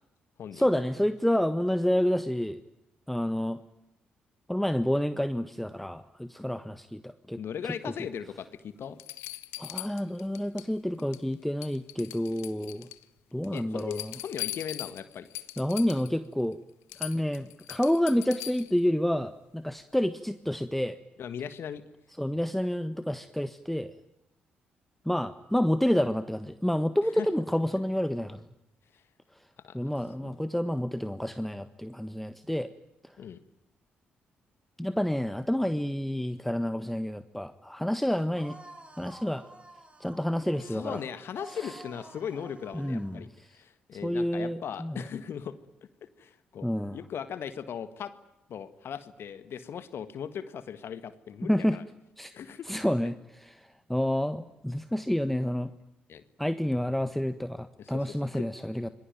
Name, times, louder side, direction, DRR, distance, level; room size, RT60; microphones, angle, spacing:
voice 1, 0.5-2.6 3.1-3.6 4.5-7.9 9.6-12.9 13.3-14.1 15.6-16.6 17.0-21.0 22.2-23.9 25.0-28.4 29.7-32.7 34.8-38.6 39.0-39.4 40.0-41.0 41.6-41.8 42.7-43.5 44.0-45.0 46.6-47.0 51.4-51.8 52.2-52.3 52.7-53.6 53.9-55.7 56.4-58.9, equal, 5° left, 11 dB, 1.4 m, -29 dB
voice 2, 7.4-9.0 13.5-15.3 21.2-21.8 27.1-27.3 28.9-29.0 29.6-29.8 30.2-30.4 33.2-33.4 40.6-45.6 46.2-48.1 48.5-51.8 52.3-52.7 56.1-56.2 57.8-58.4, left 8 dB, 60° left, 13 dB, 1.6 m, -38 dB
sound 1, 8.3-8.4 9.0-10.7 11.0-11.3 11.6-13.0 13.4-16.2 16.5-16.6 16.9-18.8 20.5-20.6, left 17 dB, 75° left, 1.0 m, -40 dB
sound 2, 38.3-43.2, right 1 dB, 25° right, 6.0 m, -50 dB
26.5 x 21.0 x 9.2 m, 0.89 s
hypercardioid pair, 40°, 5 cm